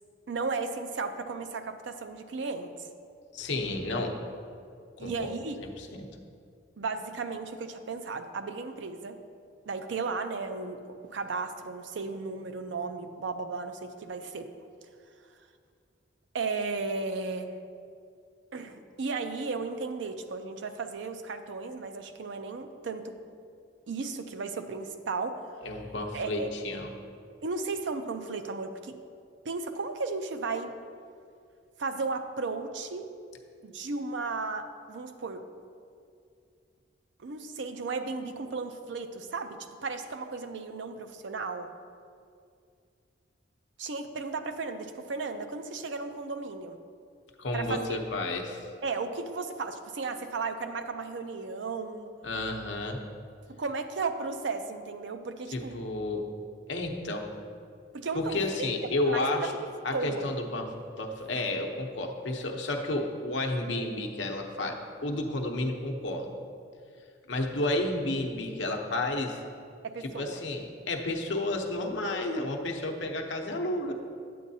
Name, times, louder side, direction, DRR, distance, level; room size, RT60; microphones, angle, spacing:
voice 1, 0.3-2.7 5.0-5.6 6.8-9.2 9.7-10.8 11.1-14.5 16.3-17.5 18.5-23.1 23.9-25.4 26.1-26.5 27.4-29.0 29.4-30.7 31.8-33.1 33.6-35.4 37.2-41.7 43.8-46.8 47.5-47.8 48.8-52.1 53.5-55.8 57.9-58.7 59.1-59.5 59.9-60.3 69.8-70.4, right 4 dB, 70° right, 7 dB, 0.5 m, -35 dB
voice 2, 3.3-4.2 5.0-5.3 5.8-6.1 25.6-26.9 47.4-48.6 52.2-53.0 55.5-56.3 56.7-57.3 58.1-59.5 59.8-60.7 61.0-66.3 67.3-69.4 70.0-73.9, left 2 dB, 70° left, 3 dB, 0.8 m, -31 dB
9.3 x 8.3 x 2.7 m, 2.3 s
head